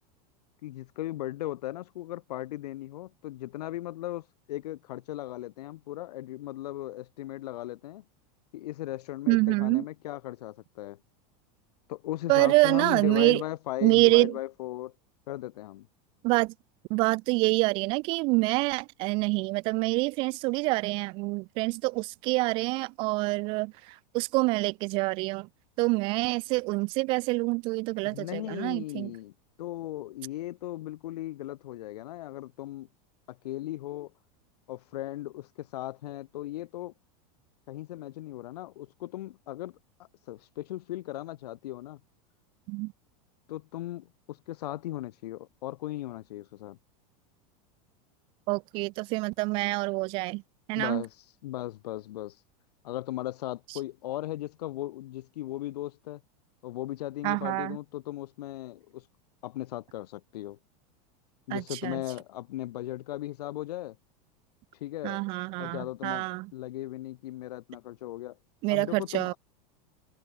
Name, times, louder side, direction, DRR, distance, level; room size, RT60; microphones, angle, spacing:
voice 1, 0.6-8.0 8.5-11.0 11.9-14.9 15.3-15.9 28.1-29.3 29.6-32.9 33.3-34.1 34.7-36.9 37.7-39.8 40.3-42.0 43.5-46.8 50.8-51.1 51.4-52.4 52.8-56.2 56.6-59.0 59.4-60.6 61.5-64.0 64.8-65.2 65.5-66.3 66.5-68.4 68.7-69.4, left 15 dB, 80° left, 6.8 m, -37 dB
voice 2, 9.3-9.8 12.3-13.4 13.8-14.3 16.2-16.5 16.9-25.5 25.8-29.1 42.7-42.9 48.5-50.4 50.7-51.0 53.7-53.8 57.2-57.8 61.5-62.0 65.0-66.5 68.6-69.3, right 25 dB, 25° right, 0.3 m, -26 dB
supercardioid pair, 180°, 20 cm